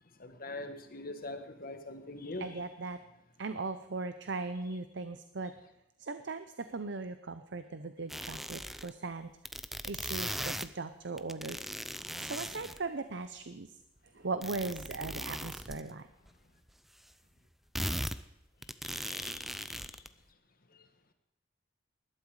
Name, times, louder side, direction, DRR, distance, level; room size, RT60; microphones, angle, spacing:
voice 1, 0.2-2.6 18.8-20.0 20.7-20.8, left 2 dB, 50° left, 1.4 m, -43 dB
voice 2, 2.4-3.0 3.4-5.5 6.0-9.3 9.8-11.6 12.2-13.7 14.1-16.1, right 3 dB, 65° right, 0.7 m, -38 dB
sound 1, 8.1-8.9 9.4-10.7 11.2-12.8 14.4-15.8 16.3-16.4 16.7-16.8 17.7-18.2 18.6-20.1, equal, ahead, 0.6 m, -38 dB
20.0 x 12.5 x 4.9 m
head